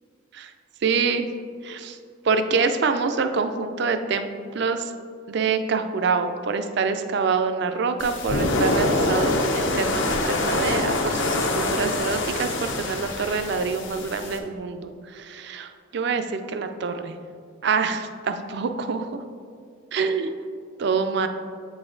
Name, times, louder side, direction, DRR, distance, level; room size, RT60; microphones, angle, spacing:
voice 1, 0.8-1.3 1.6-2.0 2.2-4.3 4.5-4.9 5.3-17.2 17.6-19.2 19.9-20.3 20.8-21.3, right 5 dB, 55° right, 8 dB, 0.4 m, -26 dB
sound 1, 8.0-14.4, left 2 dB, 65° left, 0.7 m, -25 dB
8.1 x 4.0 x 3.8 m, 2.2 s
head